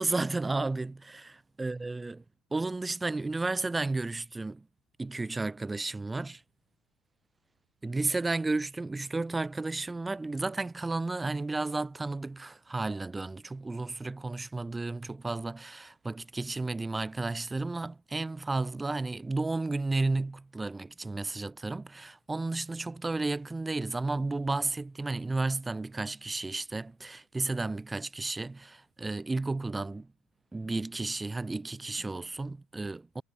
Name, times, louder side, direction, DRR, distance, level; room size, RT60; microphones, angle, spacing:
voice 1, 0.0-2.2 2.5-4.6 5.0-6.4 7.8-30.1 30.5-33.2, right 3 dB, 10° right, 1.7 m, -33 dB
cardioid pair, 160°, 0 cm